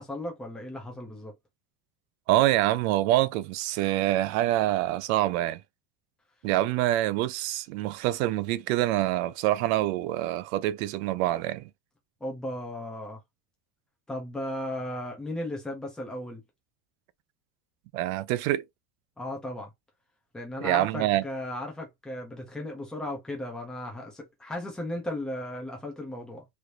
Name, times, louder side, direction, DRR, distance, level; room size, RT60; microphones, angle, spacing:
voice 1, 0.0-1.3 12.2-13.2 14.1-16.4 19.2-19.7 20.3-26.5, left 1 dB, ahead, 0.3 m, -36 dB
voice 2, 2.3-5.6 6.4-11.7 17.9-18.6 20.6-21.2, right 15 dB, 80° right, 0.5 m, -26 dB
3.2 x 2.4 x 2.7 m
cardioid pair, 175°, 42 cm